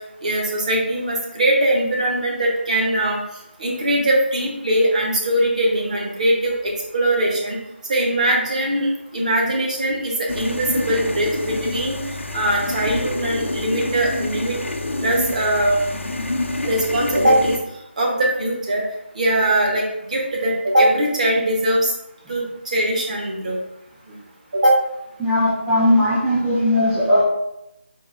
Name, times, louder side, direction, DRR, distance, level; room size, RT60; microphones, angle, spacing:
voice 1, 0.2-3.2 3.6-7.6 7.9-8.9 9.1-12.0 12.3-14.6 15.0-15.8 16.6-17.6 18.0-18.8 19.1-19.8 20.1-21.9 22.3-22.4 22.7-23.6 24.5-24.8, right 1 dB, 35° right, -1 dB, 0.9 m, -20 dB
sound 1, 10.3-17.6, left 2 dB, 85° left, 0.5 m, -27 dB
voice 2, 25.2-27.2, left 1 dB, 5° right, -13 dB, 0.4 m, -18 dB
4.0 x 2.3 x 3.6 m, 0.84 s
figure-of-eight pair, 165°, 7 cm